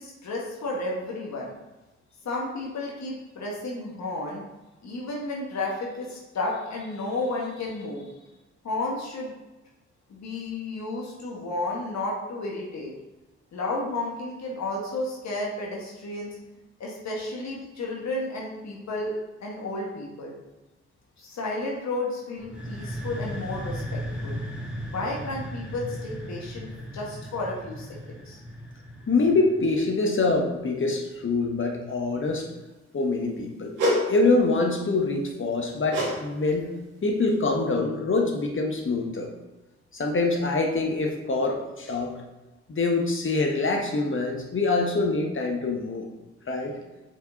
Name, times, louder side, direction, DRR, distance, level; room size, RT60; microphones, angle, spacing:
voice 1, 0.0-1.5 2.2-4.4 4.8-8.1 8.6-9.3 10.1-12.9 13.5-16.3 16.8-19.1 19.4-20.4 21.2-24.4 24.9-28.4, left 2 dB, 65° left, -3 dB, 1.7 m, -32 dB
sound 1, 22.4-30.0, equal, 5° right, 1.9 m, -36 dB
voice 2, 29.1-32.5 32.9-33.7 34.1-36.7 37.0-39.3 39.9-42.2 42.7-46.1 46.5-46.8, left 3 dB, 45° left, 2 dB, 1.5 m, -25 dB
sound 2, 33.8-34.1 35.9-36.2 36.5-36.7 37.3-37.4, equal, 85° right, 2.4 m, -25 dB
6.5 x 5.1 x 4.0 m, 1.1 s
supercardioid pair, 55°, 29 cm